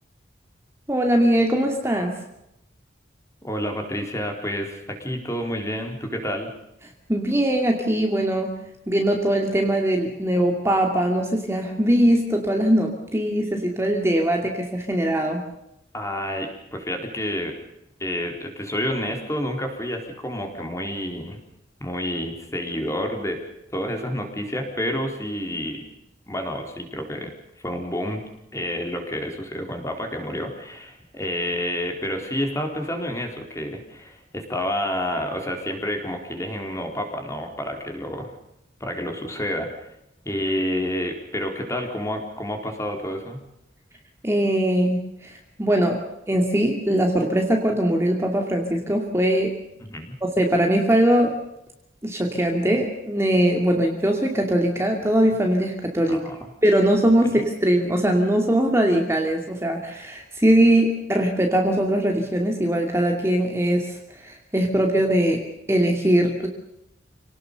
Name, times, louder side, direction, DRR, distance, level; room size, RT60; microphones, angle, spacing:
voice 1, 0.9-2.1 7.1-8.5 8.9-15.4 44.2-49.5 50.4-51.4 52.0-56.2 56.6-64.0 64.2-65.4 65.7-66.5, right 1 dB, 15° right, 2 dB, 2.5 m, -21 dB
voice 2, 3.4-6.5 15.9-17.5 18.0-21.4 21.8-23.4 23.7-25.8 26.3-27.3 27.6-28.2 28.5-38.3 38.8-39.7 40.2-43.4 49.8-50.2 56.1-56.5, left 1 dB, 15° left, 3 dB, 4.3 m, -29 dB
28.0 x 19.0 x 6.9 m, 0.83 s
head